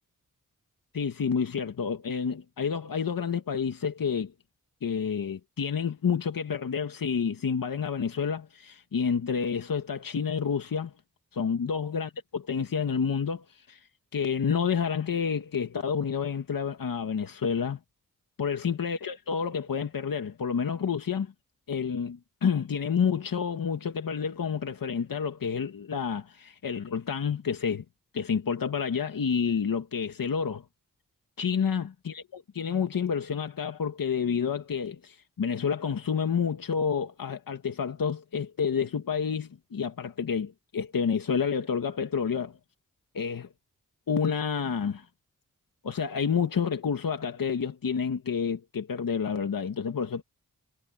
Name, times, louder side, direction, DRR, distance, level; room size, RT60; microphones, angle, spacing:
voice 1, 0.9-4.3 4.8-10.9 11.3-13.8 14.1-17.8 18.4-21.3 21.7-27.8 28.1-30.6 31.4-42.6 43.1-43.5 44.1-45.1 45.8-50.2, left 6 dB, 75° left, 1.9 m, -29 dB
cardioid pair, 55°, 34 cm